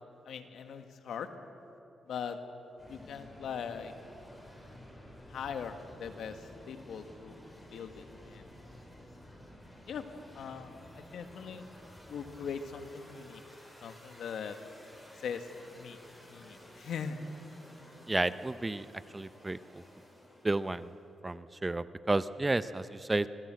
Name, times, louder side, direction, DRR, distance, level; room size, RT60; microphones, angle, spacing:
voice 1, 0.3-1.3 2.1-2.4 2.9-3.9 5.3-7.4 7.7-8.4 9.9-10.1 10.3-11.6 12.1-13.4 13.8-14.6 15.2-15.5 15.7-16.0 16.3-17.2, left 7 dB, 75° left, 7 dB, 1.8 m, -40 dB
sound 1, 2.8-21.1, left 1 dB, 15° left, 8.0 m, -53 dB
voice 2, 18.1-18.9 19.1-19.8 20.4-20.9 21.2-23.3, right 2 dB, 20° right, 14 dB, 0.8 m, -31 dB
27.0 x 21.0 x 7.7 m, 3.0 s
cardioid pair, 70°, 0 cm